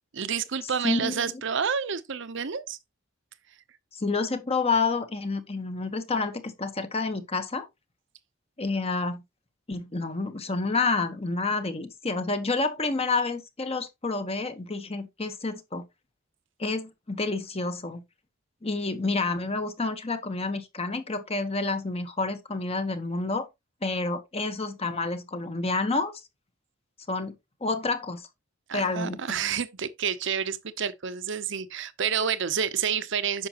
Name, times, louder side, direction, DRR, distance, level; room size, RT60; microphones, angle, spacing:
voice 1, 0.1-2.8 28.7-33.5, right 7 dB, 65° right, 0.8 m, -29 dB
voice 2, 0.8-1.3 3.9-7.7 8.6-9.2 9.7-15.8 16.6-18.0 18.6-23.5 23.8-26.1 27.1-27.3 27.6-28.2 28.7-29.2, left 3 dB, 30° left, 1.1 m, -29 dB
9.7 x 6.1 x 3.0 m
head